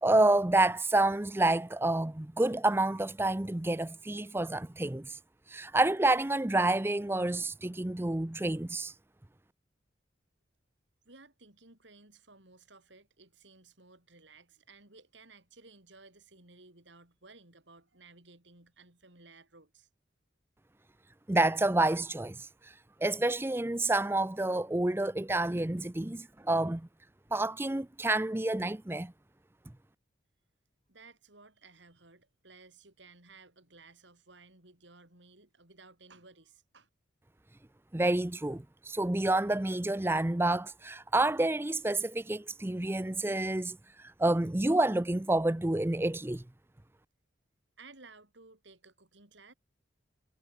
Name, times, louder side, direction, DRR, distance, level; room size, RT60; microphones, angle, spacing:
voice 1, 0.0-5.2 5.5-8.9 21.3-22.7 23.0-26.9 27.3-29.1 37.9-46.4, right 2 dB, 10° right, 0.5 m, -29 dB
voice 2, 11.1-19.9 30.9-36.9 47.8-49.5, right 3 dB, 70° right, 5.3 m, -57 dB
head